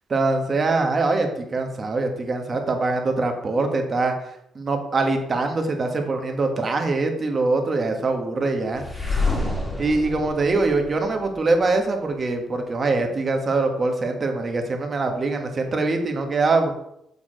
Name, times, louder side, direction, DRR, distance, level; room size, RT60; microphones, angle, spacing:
voice 1, 0.1-4.1 4.5-8.8 9.8-16.7, right 3 dB, 40° right, 4 dB, 1.4 m, -23 dB
sound 1, 8.7-11.7, left 3 dB, 15° left, 1.8 m, -28 dB
7.1 x 4.4 x 5.0 m, 0.79 s
cardioid pair, 90°, 0 cm